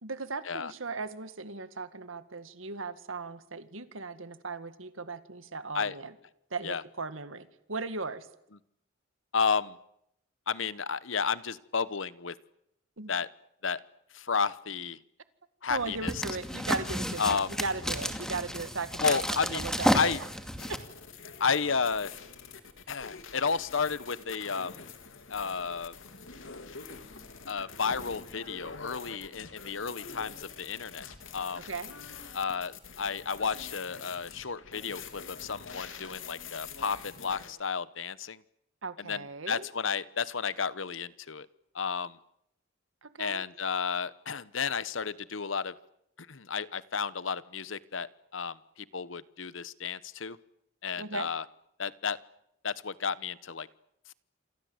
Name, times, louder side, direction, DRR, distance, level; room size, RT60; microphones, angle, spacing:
voice 1, 0.0-6.1 6.5-8.3 13.0-13.1 15.7-19.2 19.4-20.0 20.7-20.8 31.6-31.9 38.8-39.7 43.0-43.4 51.0-51.3, right 3 dB, 90° right, 11 dB, 1.9 m, -37 dB
voice 2, 9.3-9.8 10.5-12.4 13.1-13.3 13.6-13.8 14.1-15.0 15.6-16.2 17.2-17.6 19.0-19.6 19.9-20.2 21.4-22.1 22.9-24.8 25.3-25.9 27.5-31.1 31.3-31.7 32.3-38.4 39.0-41.5 41.7-42.2 43.2-45.7 46.2-48.6 48.9-50.4 50.8-51.4 51.8-52.2 52.6-53.7, left 5 dB, 70° left, 17 dB, 1.0 m, -32 dB
sound 1, 15.7-20.8, equal, 5° left, 2.4 m, -32 dB
sound 2, 20.6-37.5, left 5 dB, 90° left, 3.1 m, -46 dB
28.0 x 23.5 x 8.1 m, 0.78 s
head